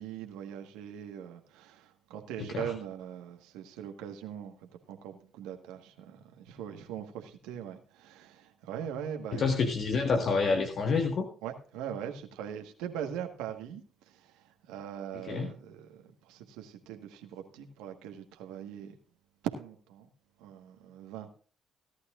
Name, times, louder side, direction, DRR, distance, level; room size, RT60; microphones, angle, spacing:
voice 1, 0.0-9.4 11.4-18.9 19.4-20.1 20.4-21.3, right 9 dB, 85° right, 1.4 m, -41 dB
voice 2, 2.4-2.7 9.3-11.3 15.2-15.5, left 4 dB, 60° left, 1.6 m, -28 dB
17.5 x 11.5 x 2.5 m
supercardioid pair, 55°, 0 cm